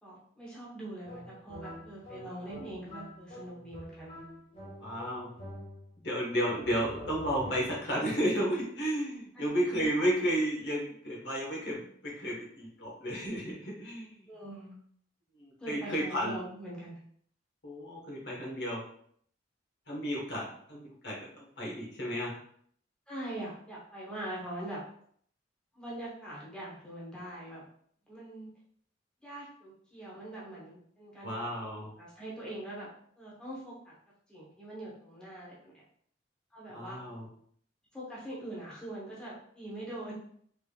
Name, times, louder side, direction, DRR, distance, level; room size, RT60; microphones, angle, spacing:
voice 1, 0.0-4.2 9.3-9.4 14.3-14.7 15.6-17.0 23.1-24.8 25.7-27.6 28.1-28.5 29.2-31.3 32.0-32.9 33.2-33.9 34.3-35.8 36.5-37.0 37.9-40.1, right 1 dB, 5° left, -7 dB, 0.8 m, -43 dB
sound 1, 1.0-6.0 6.4-8.0, equal, 35° left, 1.3 m, -46 dB
voice 2, 4.8-5.3 6.0-14.3 15.4-16.4 17.6-18.8 19.9-22.4 31.2-31.9 36.7-37.3, equal, 60° left, -3 dB, 1.1 m, -33 dB
3.5 x 3.3 x 2.3 m, 0.63 s
head